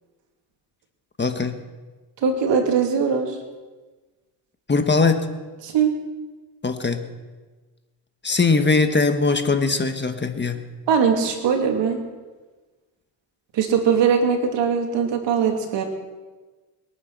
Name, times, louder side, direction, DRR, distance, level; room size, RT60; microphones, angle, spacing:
voice 1, 1.2-1.6 4.7-5.3 6.6-7.0 8.2-10.6, left 4 dB, 25° left, 7 dB, 1.4 m, -20 dB
voice 2, 2.2-3.4 5.6-5.9 10.9-12.0 13.5-15.8, right 6 dB, 75° right, 3 dB, 2.8 m, -20 dB
22.5 x 9.2 x 6.1 m, 1.3 s
cardioid pair, 90°, 44 cm